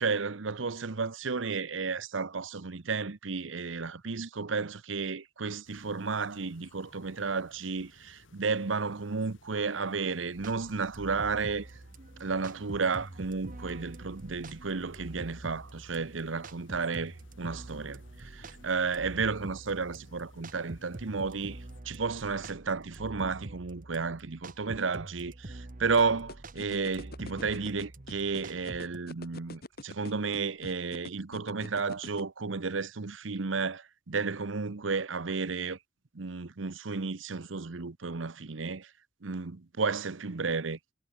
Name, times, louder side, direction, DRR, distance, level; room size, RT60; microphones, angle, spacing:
voice 1, 0.0-11.8 12.2-35.8 36.1-38.9 39.2-40.8, right 4 dB, 80° right, 0.9 m, -32 dB
sound 1, 5.6-21.8, left 2 dB, 85° left, 3.6 m, -60 dB
sound 2, 10.3-29.0, right 2 dB, 45° right, 1.3 m, -46 dB
sound 3, 26.0-32.2, left 2 dB, 55° left, 2.7 m, -43 dB
head